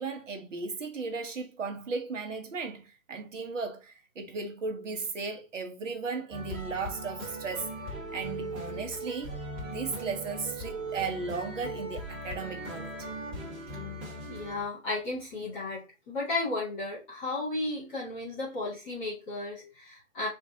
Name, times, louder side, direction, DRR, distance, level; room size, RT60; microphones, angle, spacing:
voice 1, 0.0-7.7 8.1-13.1 19.6-19.7, right 4 dB, 65° right, 1.3 m, -36 dB
sound 1, 6.3-14.7, right 1 dB, 15° right, 1.4 m, -39 dB
voice 2, 14.3-20.3, left 2 dB, 5° left, 0.4 m, -34 dB
4.5 x 2.7 x 3.6 m
figure-of-eight pair, 135°, 41 cm